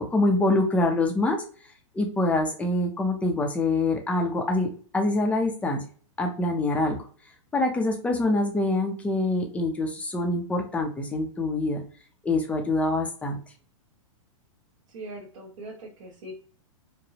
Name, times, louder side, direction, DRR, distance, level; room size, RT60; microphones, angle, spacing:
voice 1, 0.0-1.4 1.9-5.8 6.2-7.0 7.5-11.8 12.2-13.4, left 2 dB, 5° left, 2 dB, 0.6 m, -25 dB
voice 2, 14.9-16.3, right 1 dB, 65° right, -2 dB, 1.4 m, -41 dB
4.9 x 2.1 x 2.8 m, 0.42 s
hypercardioid pair, 150°, 17 cm